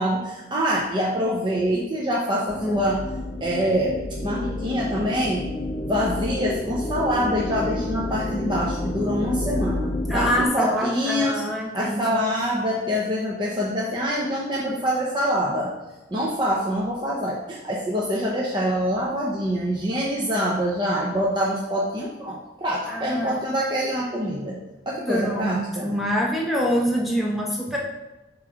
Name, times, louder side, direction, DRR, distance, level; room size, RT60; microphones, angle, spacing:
voice 1, 0.0-3.0 3.4-4.0 4.2-5.5 5.8-11.4 11.7-15.7 16.1-24.6 24.9-25.9, equal, 25° right, -4 dB, 0.7 m, -25 dB
sound 1, 2.5-10.5, left 1 dB, 25° left, 0.4 m, -29 dB
voice 2, 10.1-12.2 22.9-23.4 25.1-27.8, equal, ahead, -3 dB, 1.0 m, -25 dB
7.4 x 3.2 x 4.9 m, 1.0 s
head